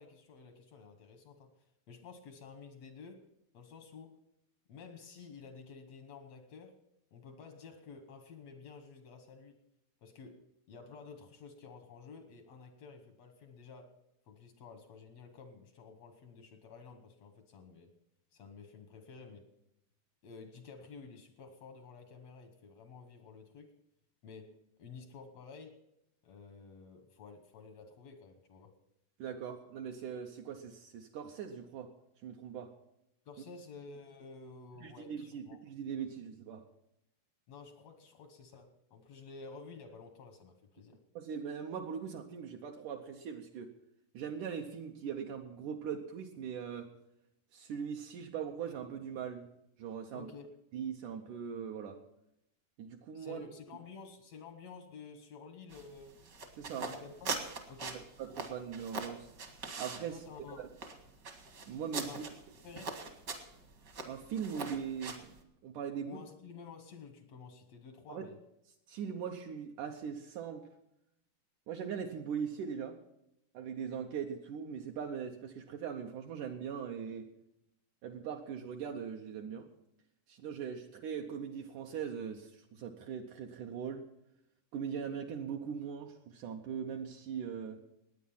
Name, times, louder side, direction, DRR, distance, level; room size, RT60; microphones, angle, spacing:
voice 1, 0.0-3.2 3.5-4.2 4.7-6.8 7.1-9.6 10.0-13.9 14.3-17.9 18.3-19.5 20.2-23.7 24.2-25.8 26.2-28.7 33.2-35.6 37.5-41.0 50.1-50.5 53.1-56.1 56.7-57.3 57.7-58.1 60.1-60.6 62.0-62.2 62.6-63.0 66.0-68.4, left 5 dB, 80° left, 6 dB, 1.4 m, -51 dB
voice 2, 29.2-31.9 32.2-32.7 34.8-36.7 41.2-43.7 44.1-46.9 47.5-49.5 49.8-50.3 50.7-52.0 52.8-53.4 56.6-56.9 57.9-59.3 59.8-60.2 60.6-60.7 61.7-62.2 64.1-65.3 65.6-66.2 68.1-68.3 68.9-70.7 71.7-73.0 73.5-77.3 78.0-79.7 80.3-84.1 84.7-87.8, right 7 dB, 90° right, 2 dB, 1.7 m, -40 dB
sound 1, 55.7-65.4, right 3 dB, 55° right, 1.1 m, -43 dB
19.0 x 9.4 x 5.6 m, 0.84 s
omnidirectional pair, 4.8 m